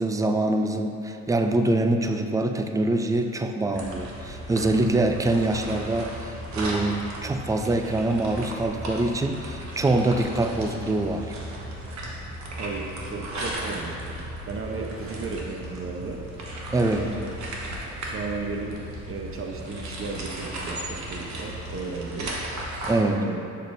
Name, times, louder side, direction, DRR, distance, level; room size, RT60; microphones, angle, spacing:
voice 1, 0.0-11.3 16.7-17.2 22.8-23.2, right 2 dB, 10° right, 5 dB, 0.4 m, -24 dB
sound 1, 3.7-22.9, right 1 dB, 65° right, 1.2 m, -36 dB
voice 2, 12.6-14.0 14.5-16.2 17.2-17.3 17.8-22.4 23.2-23.4, right 4 dB, 45° right, 1 dB, 0.8 m, -34 dB
7.3 x 6.5 x 2.6 m, 2.9 s
cardioid pair, 90°, 30 cm